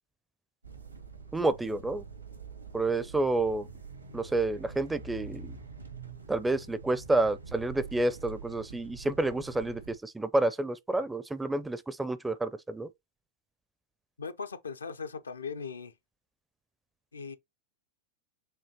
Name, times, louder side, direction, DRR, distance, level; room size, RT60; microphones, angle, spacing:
sound 1, 0.6-10.0, right 5 dB, 85° right, 1.3 m, -46 dB
voice 1, 1.3-2.0 2.7-3.7 4.1-5.5 6.3-12.9, right 2 dB, 10° right, 0.4 m, -29 dB
voice 2, 14.2-15.9 17.1-17.4, left 5 dB, 75° left, 0.5 m, -39 dB
6.6 x 2.9 x 2.7 m
figure-of-eight pair, 90°, 0 cm